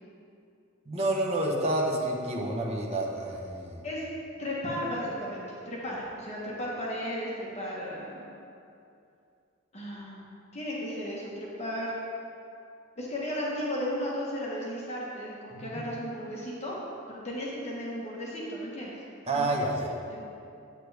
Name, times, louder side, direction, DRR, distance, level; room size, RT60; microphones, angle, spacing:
voice 1, 0.9-3.9 15.5-15.8 19.2-19.9, right 1 dB, 30° right, -2 dB, 1.1 m, -29 dB
voice 2, 4.4-8.3 9.7-11.9 13.0-16.8 17.1-18.9 19.3-19.4 20.1-20.2, equal, 35° left, -5 dB, 1.4 m, -35 dB
8.4 x 8.1 x 3.4 m, 2.5 s
head